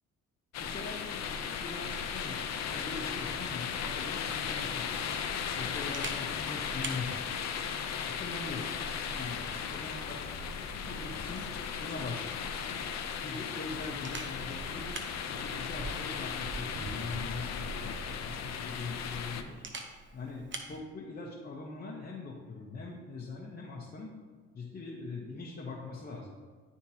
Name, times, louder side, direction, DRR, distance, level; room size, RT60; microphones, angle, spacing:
sound 1, 0.5-19.4, left 7 dB, 60° left, 0.6 m, -36 dB
voice 1, 0.6-5.0 5.6-7.3 8.1-8.7 9.1-10.2 10.8-11.5 11.7-12.5 13.2-14.9 15.3-19.6 20.1-24.1 24.5-26.3, left 3 dB, 30° left, -3 dB, 0.9 m, -42 dB
Camera, 4.1-20.8, right 3 dB, 40° right, 0.8 m, -48 dB
10.5 x 3.6 x 2.8 m, 1.4 s
cardioid pair, 90°, 30 cm